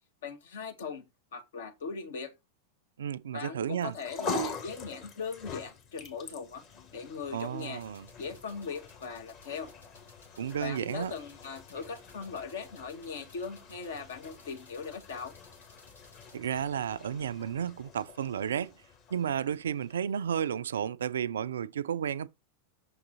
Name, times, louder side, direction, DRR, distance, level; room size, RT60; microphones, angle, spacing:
voice 1, 0.2-2.3 3.3-6.6 6.9-7.8 8.2-9.7 10.6-15.4, left 5 dB, 60° left, 1.0 m, -39 dB
voice 2, 3.0-4.0 7.3-8.1 10.4-11.1 16.3-18.7 19.1-22.3, right 8 dB, 65° right, 0.3 m, -32 dB
sound 1, 3.8-20.3, left 3 dB, 40° left, 1.6 m, -44 dB
sound 2, 7.8-16.4, left 2 dB, 80° left, 1.5 m, -60 dB
6.4 x 3.9 x 4.1 m
figure-of-eight pair, 90°, 0 cm